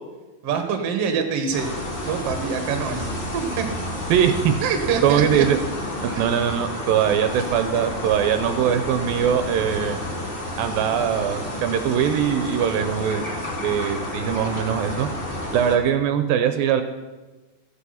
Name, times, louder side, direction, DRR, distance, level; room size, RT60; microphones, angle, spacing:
voice 1, 0.4-1.7 2.0-3.1 3.3-3.7 4.6-5.5 6.1-6.2, right 6 dB, 55° right, 5 dB, 1.9 m, -25 dB
sound 1, 1.5-15.8, left 1 dB, 30° left, 1.0 m, -30 dB
voice 2, 4.1-4.6 5.0-5.6 6.0-10.0 10.6-13.3 13.6-15.1 15.5-16.8, right 9 dB, 85° right, 7 dB, 2.4 m, -21 dB
14.5 x 8.4 x 5.8 m, 1.2 s
omnidirectional pair, 4.3 m